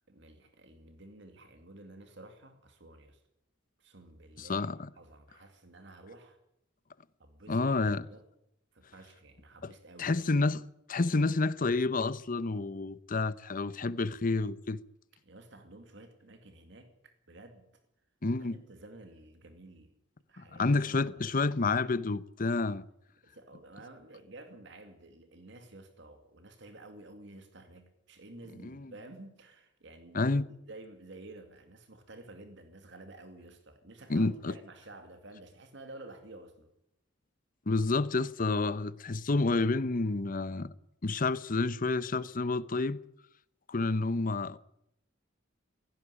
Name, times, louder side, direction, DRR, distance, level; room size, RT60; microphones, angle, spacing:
voice 1, 0.1-3.2 3.8-4.7 4.9-6.4 7.2-8.2 8.7-10.1 15.2-17.6 18.3-19.9 20.3-21.4 23.2-30.4 30.7-36.7, right 2 dB, 65° right, 2.3 m, -51 dB
voice 2, 4.4-4.9 7.5-8.0 9.6-9.7 10.0-14.8 18.2-18.6 20.4-22.8 28.6-28.9 30.1-30.4 34.1-34.5 37.7-40.7 41.0-43.0 43.7-44.6, left 3 dB, 45° left, 0.8 m, -29 dB
17.0 x 16.5 x 9.9 m
head